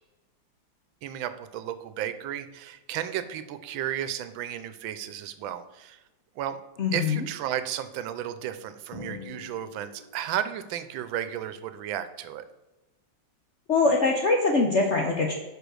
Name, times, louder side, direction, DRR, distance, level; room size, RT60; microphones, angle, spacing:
voice 1, 1.0-6.0 6.4-6.6 6.9-12.4, right 11 dB, 80° right, 11 dB, 1.4 m, -33 dB
voice 2, 6.8-7.2 13.7-15.3, left 3 dB, 60° left, 1 dB, 0.7 m, -23 dB
Drum, 8.9-10.6, left 3 dB, 80° left, 2.7 m, -44 dB
5.2 x 5.0 x 6.2 m, 1.1 s
omnidirectional pair, 2.1 m